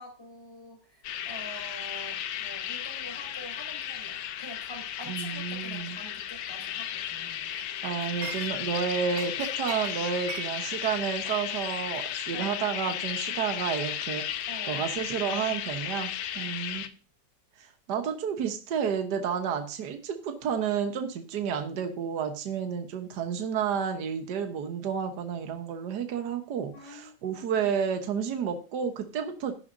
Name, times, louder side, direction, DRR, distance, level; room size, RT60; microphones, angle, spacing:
voice 1, 0.0-7.5 12.3-12.6 14.5-14.9 16.3-16.5 26.7-27.6, left 1 dB, 15° left, 1 dB, 3.8 m, -46 dB
sound 1, 1.0-16.9, left 10 dB, 85° left, 1.5 m, -34 dB
voice 2, 5.1-6.0 7.8-14.3 14.7-16.9 17.6-29.5, right 7 dB, 65° right, 6 dB, 1.7 m, -31 dB
Chink clink, 7.5-8.8 9.1-13.7 14.0-14.3, right 5 dB, 45° right, 1.2 m, -43 dB
12.5 x 11.0 x 2.7 m, 0.36 s
omnidirectional pair, 2.0 m